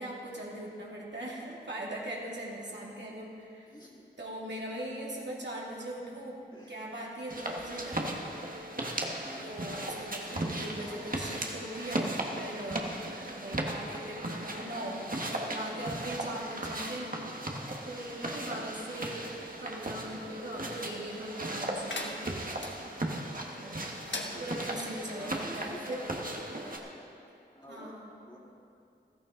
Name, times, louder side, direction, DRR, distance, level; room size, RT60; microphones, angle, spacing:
voice 1, 0.0-3.7 4.2-6.4 6.7-8.2 9.4-12.9 13.3-15.0 15.3-17.2 17.8-19.3 19.6-22.2 23.5-26.0 27.7-28.1, right 1 dB, 70° right, -5 dB, 2.5 m, -40 dB
voice 2, 3.7-4.1 6.5-6.8 9.1-9.5 10.8-11.2 14.6-14.9 17.4-17.5 25.1-26.2 26.5-27.9 28.2-28.4, left 1 dB, 25° left, -5 dB, 2.8 m, -50 dB
sound 1, 7.3-26.8, right 1 dB, 50° right, 1.5 m, -37 dB
Livestock farm animals working animals, 10.1-13.5 13.8-15.1 18.9-20.0, left 1 dB, 50° left, 3.5 m, -57 dB
sound 2, 21.9-22.7 24.0-24.9, left 2 dB, 75° left, 1.2 m, -39 dB
14.5 x 13.5 x 3.9 m, 2.5 s
wide cardioid pair, 50°, 19 cm